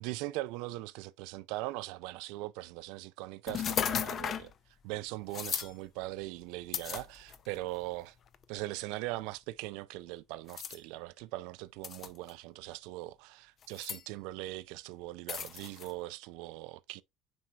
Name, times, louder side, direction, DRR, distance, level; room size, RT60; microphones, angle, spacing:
voice 1, 0.0-4.5 4.8-8.1 8.5-17.0, right 18 dB, 70° right, 0.4 m, -40 dB
sound 1, 3.5-4.5 5.3-5.7 6.7-7.6 8.3-8.4 10.5-10.8 11.8-12.3 13.6-14.0 15.3-15.9, left 8 dB, 30° left, 0.5 m, -35 dB
9.3 x 4.4 x 2.4 m
cardioid pair, 175°, 0 cm